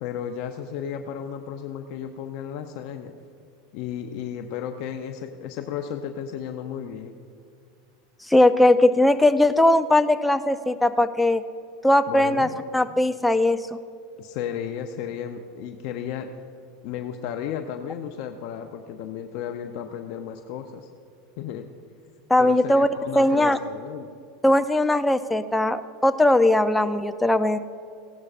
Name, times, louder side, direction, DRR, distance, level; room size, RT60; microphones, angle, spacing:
voice 1, 0.0-3.1 3.7-7.1 12.1-12.6 14.2-16.3 16.8-20.9 21.4-21.7 22.4-24.1, left 8 dB, 60° left, 5 dB, 0.6 m, -33 dB
voice 2, 8.3-11.4 11.8-12.5 12.7-13.6 22.3-22.9 23.2-23.6 24.4-27.6, left 1 dB, 5° left, 9 dB, 0.4 m, -19 dB
16.5 x 12.0 x 2.5 m, 2.3 s
supercardioid pair, 120°, 0 cm